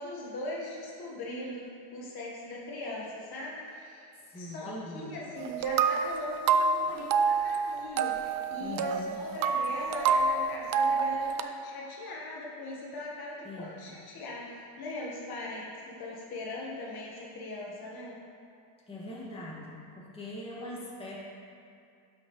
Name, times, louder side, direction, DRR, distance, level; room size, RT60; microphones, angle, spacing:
voice 1, 0.0-4.1 4.3-18.2, left 2 dB, 55° left, -4 dB, 1.4 m, -40 dB
voice 2, 4.2-5.2 6.8-7.0 8.6-9.2 13.4-14.0 18.9-21.2, left 1 dB, 10° left, -6 dB, 1.8 m, -42 dB
sound 1, 5.4-11.4, right 5 dB, 50° right, 0.5 m, -28 dB
11.5 x 6.0 x 3.1 m, 2.4 s
cardioid pair, 130°, 45 cm